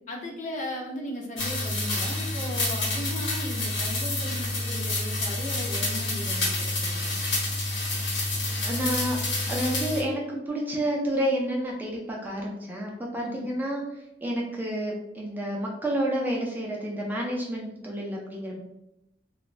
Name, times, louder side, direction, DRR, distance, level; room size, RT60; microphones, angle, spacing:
voice 1, 0.1-7.2 13.2-13.5, left 1 dB, 45° left, -1 dB, 0.6 m, -37 dB
sound 1, 1.4-10.0, left 2 dB, 75° left, 1.0 m, -28 dB
voice 2, 8.6-9.2 9.5-13.8 14.2-18.6, right 1 dB, 10° right, -2 dB, 0.4 m, -29 dB
3.1 x 2.1 x 2.4 m, 0.87 s
head